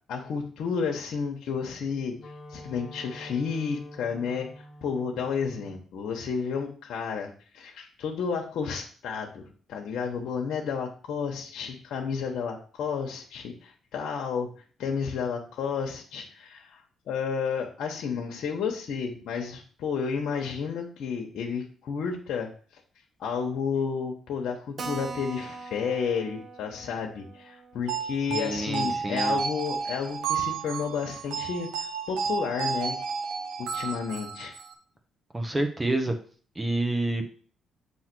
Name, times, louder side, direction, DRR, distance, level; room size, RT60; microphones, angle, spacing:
voice 1, 0.1-2.1 2.5-9.4 9.7-14.5 14.8-22.5 23.2-33.0 33.6-34.5, left 6 dB, 75° left, 1 dB, 1.1 m, -31 dB
Wind instrument woodwind instrument, 1.7-5.9, left 1 dB, 40° left, 1.4 m, -46 dB
Keyboard (musical), 24.8-29.8 30.1-30.2 30.5-30.6 30.8-30.9 31.5-31.9, right 4 dB, 45° right, 0.7 m, -43 dB
sound 1, 27.9-34.7, right 5 dB, 90° right, 0.9 m, -32 dB
voice 2, 28.3-29.4 35.3-36.1 36.5-37.2, right 2 dB, 20° right, 5 dB, 1.0 m, -28 dB
7.5 x 3.0 x 6.0 m, 0.44 s
cardioid pair, 90°, 0 cm